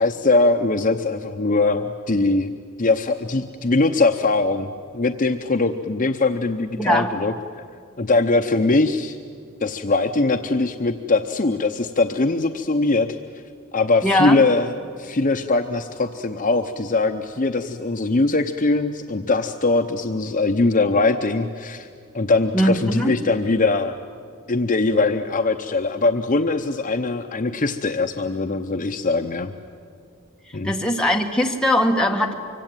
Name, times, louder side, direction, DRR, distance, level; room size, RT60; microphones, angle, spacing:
voice 1, 0.0-2.5 2.8-7.3 8.0-9.2 9.6-13.1 13.7-21.9 22.1-24.0 24.5-29.5 30.5-30.7, left 3 dB, 35° left, 6 dB, 0.8 m, -21 dB
voice 2, 6.8-7.1 14.0-14.4 22.5-23.2 30.6-32.3, equal, 5° left, 1 dB, 1.8 m, -20 dB
25.0 x 24.5 x 9.1 m, 2.2 s
head